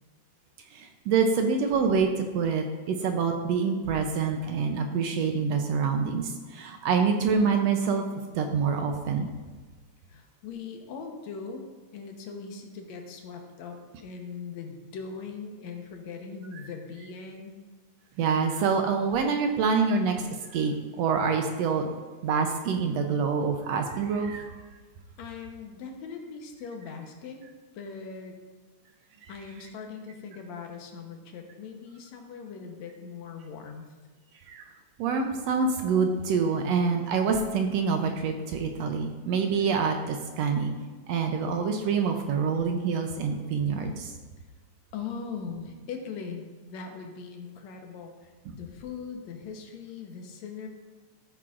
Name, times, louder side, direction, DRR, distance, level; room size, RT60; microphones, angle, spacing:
voice 1, 0.7-8.0 8.3-9.3 18.2-20.2 20.5-21.9 22.2-24.5 29.2-29.3 34.5-34.7 35.0-40.7 41.1-44.1, right 5 dB, 75° right, 4 dB, 1.7 m, -26 dB
voice 2, 10.1-11.6 11.9-17.6 25.2-27.5 27.7-28.3 29.3-33.9 44.9-50.7, left 5 dB, 75° left, 3 dB, 2.2 m, -40 dB
14.5 x 8.8 x 2.5 m, 1.3 s
omnidirectional pair, 3.3 m